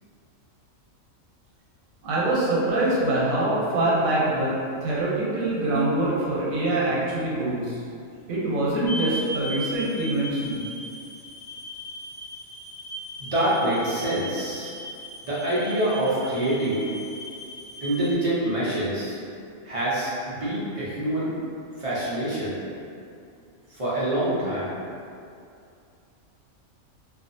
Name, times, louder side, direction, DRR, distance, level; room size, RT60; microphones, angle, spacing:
voice 1, 2.0-4.5 4.8-7.8 8.3-10.6, right 2 dB, 85° right, -6 dB, 1.1 m, -24 dB
sound 1, 8.9-18.1, right 1 dB, 40° left, 1.0 m, -38 dB
voice 2, 13.2-14.7 15.3-16.9 17.8-19.2 19.6-21.3 21.8-22.6 23.7-24.7, right 1 dB, 60° right, -9 dB, 0.3 m, -26 dB
2.5 x 2.4 x 2.5 m, 2.5 s
omnidirectional pair, 1.4 m